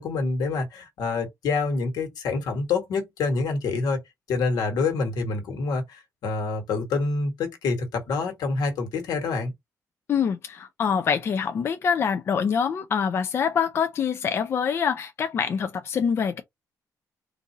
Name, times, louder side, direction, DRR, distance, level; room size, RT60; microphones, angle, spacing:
voice 1, 0.0-4.0 4.3-9.5, left 4 dB, 80° left, 1.5 m, -27 dB
voice 2, 10.1-16.4, left 7 dB, 40° left, 0.4 m, -25 dB
3.8 x 2.6 x 2.8 m
cardioid pair, 175°, 7 cm